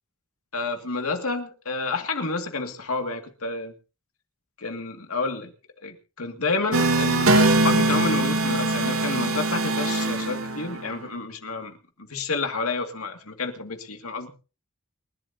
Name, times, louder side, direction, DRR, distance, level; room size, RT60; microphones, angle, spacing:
voice 1, 0.5-3.7 4.6-5.5 5.8-11.7 12.1-14.3, left 3 dB, 90° left, 5 dB, 2.2 m, -29 dB
sound 1, 6.7-11.0, right 2 dB, 75° right, 2.6 m, -22 dB
29.0 x 11.5 x 2.8 m, 0.34 s
head